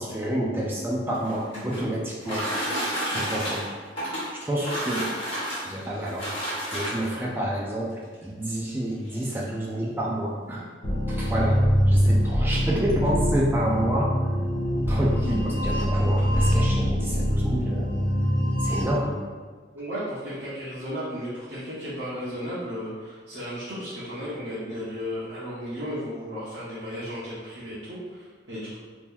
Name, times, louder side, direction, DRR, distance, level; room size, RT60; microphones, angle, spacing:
voice 1, 0.0-2.5 3.0-3.6 4.0-5.1 5.5-10.7 11.1-14.1 14.9-17.9 18.6-19.2, right 1 dB, 10° right, -4 dB, 0.4 m, -29 dB
sound 1, 1.0-7.3 8.1-8.2 8.6-8.7 9.0-9.4, equal, 30° left, 1.2 m, -31 dB
voice 2, 3.1-3.4 18.6-18.8 19.7-28.8, equal, 60° right, -11 dB, 0.8 m, -34 dB
sound 2, 10.8-18.8, equal, 60° left, 0.9 m, -23 dB
2.9 x 2.5 x 3.6 m, 1.5 s
head